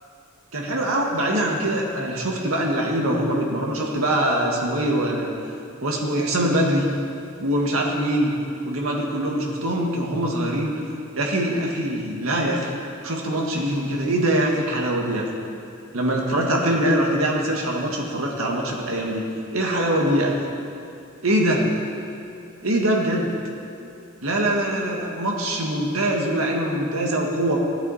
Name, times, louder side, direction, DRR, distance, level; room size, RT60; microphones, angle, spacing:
voice 1, 0.5-5.3 5.8-6.9 7.4-8.4 8.6-10.7 11.2-12.7 13.0-15.3 15.9-19.2 19.5-20.4 21.2-21.7 22.6-23.3 24.2-27.6, right 1 dB, 75° right, -1 dB, 1.8 m, -23 dB
16.5 x 11.5 x 4.2 m, 2.6 s
head